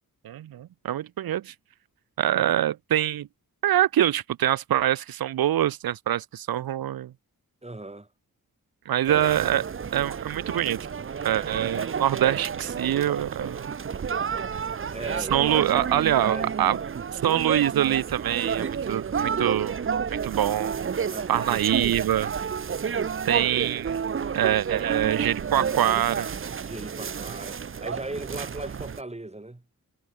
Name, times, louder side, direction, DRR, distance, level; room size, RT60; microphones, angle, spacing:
voice 1, 0.2-1.5 2.2-3.3 3.6-7.1 8.9-10.8 11.2-13.7 15.2-16.8 17.1-19.8 20.1-20.8 21.3-22.3 23.3-24.0 24.3-26.3, right 12 dB, 85° right, 0.5 m, -25 dB
voice 2, 7.6-8.1 14.9-16.5 21.1-21.4 26.6-29.6, right 2 dB, 20° right, 3.0 m, -38 dB
sound 1, 9.1-29.0, right 6 dB, 35° right, 0.5 m, -30 dB
wide cardioid pair, 100°, 35 cm